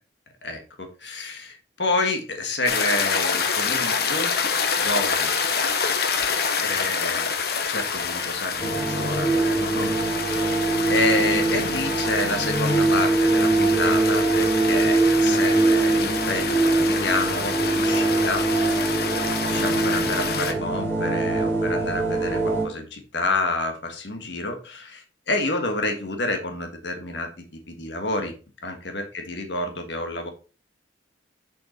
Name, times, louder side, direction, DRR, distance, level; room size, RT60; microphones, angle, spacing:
voice 1, 0.4-4.3 4.8-5.3 6.6-7.3 7.7-9.9 10.9-19.0 19.5-28.3 28.6-30.3, left 2 dB, 75° left, 5 dB, 1.5 m, -29 dB
sound 1, 2.7-20.5, left 5 dB, 55° left, 1.0 m, -27 dB
sound 2, 8.6-22.7, right 2 dB, 15° left, 3.9 m, -23 dB
6.6 x 5.8 x 4.2 m, 0.34 s
head